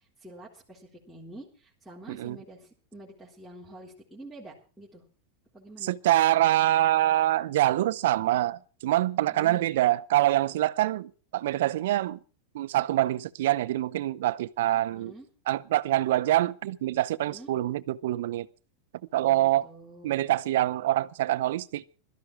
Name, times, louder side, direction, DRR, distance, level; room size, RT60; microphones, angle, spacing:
voice 1, 0.0-5.0 5.5-5.9 9.3-9.7 15.0-15.3 17.2-17.5 19.2-20.3, right 1 dB, ahead, 3.8 m, -47 dB
voice 2, 5.8-12.2 12.5-15.1 15.5-18.5 19.1-19.7 20.0-21.8, right 14 dB, 75° right, 0.7 m, -25 dB
16.5 x 13.0 x 4.7 m
supercardioid pair, 125°, 0 cm